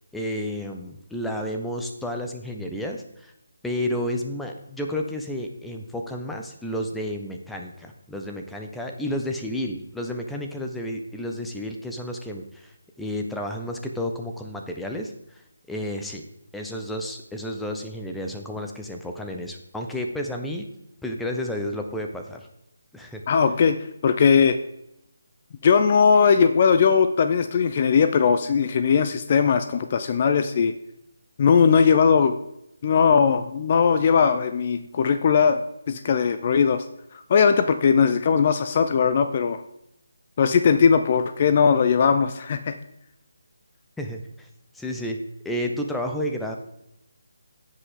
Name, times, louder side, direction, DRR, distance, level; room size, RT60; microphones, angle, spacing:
voice 1, 0.1-3.3 3.6-15.4 15.7-16.2 16.5-20.7 21.0-22.5 22.9-23.2 44.0-44.5 44.7-45.2 45.4-46.6, left 1 dB, 5° left, 2 dB, 0.8 m, -31 dB
voice 2, 23.3-23.8 24.0-24.6 25.6-30.7 31.4-32.4 32.8-35.6 35.9-36.9 37.3-39.6 40.4-42.8, left 6 dB, 35° left, 9 dB, 0.5 m, -19 dB
16.0 x 5.3 x 3.7 m, 0.81 s
figure-of-eight pair, 150°, 0 cm